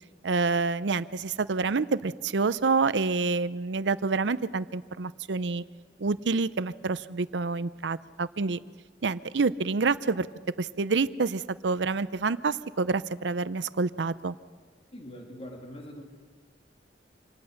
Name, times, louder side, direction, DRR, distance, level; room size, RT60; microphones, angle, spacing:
voice 1, 0.2-5.6 6.0-8.6 9.0-10.3 10.6-14.3, right 4 dB, 85° right, 16 dB, 0.6 m, -27 dB
voice 2, 14.9-16.0, equal, 35° left, 1 dB, 2.5 m, -42 dB
26.0 x 19.0 x 6.5 m, 1.6 s
head